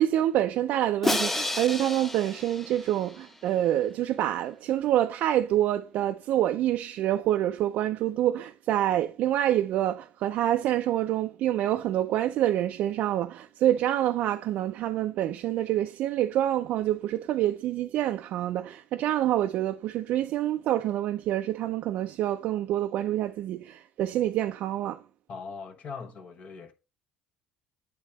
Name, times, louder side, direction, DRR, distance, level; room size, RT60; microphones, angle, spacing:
voice 1, 0.0-25.0, right 12 dB, 65° right, 0.4 m, -27 dB
Crash cymbal, 1.0-3.2, left 1 dB, 10° left, 0.5 m, -30 dB
voice 2, 25.3-26.7, left 5 dB, 50° left, 1.1 m, -40 dB
8.3 x 3.7 x 4.2 m
cardioid pair, 100°, 3 cm